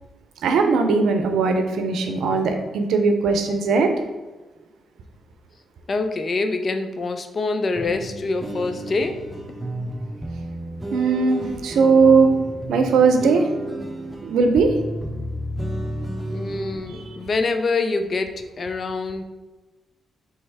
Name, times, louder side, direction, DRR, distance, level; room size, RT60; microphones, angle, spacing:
voice 1, 0.4-3.9 10.9-12.3 12.7-13.4 14.2-14.7 16.9-17.0, right 4 dB, 80° right, 5 dB, 0.5 m, -18 dB
voice 2, 5.9-9.2 16.3-19.2, left 3 dB, 50° left, 7 dB, 0.5 m, -25 dB
sound 1, 7.8-17.2, right 1 dB, 15° right, 0.9 m, -32 dB
3.4 x 3.1 x 4.7 m, 1.2 s
supercardioid pair, 45°, 0 cm